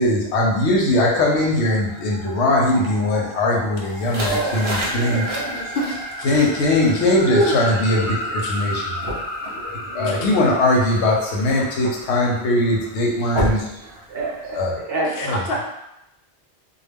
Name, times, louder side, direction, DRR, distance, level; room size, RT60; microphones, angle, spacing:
voice 1, 0.0-5.2 6.2-9.2 9.6-13.6 14.5-14.8 15.3-15.4, left 1 dB, 85° left, -2 dB, 0.9 m, -20 dB
sound 1, 1.5-13.0, equal, 30° left, 1.0 m, -33 dB
sound 2, 3.9-14.6, equal, 40° right, 0.4 m, -33 dB
voice 2, 4.2-5.8 7.2-7.6 9.9-10.4 13.2-15.4, right 1 dB, 65° right, -3 dB, 0.8 m, -27 dB
voice 3, 15.2-15.6, left 1 dB, 70° left, -1 dB, 0.7 m, -27 dB
2.3 x 2.0 x 3.4 m, 0.86 s
omnidirectional pair, 1.1 m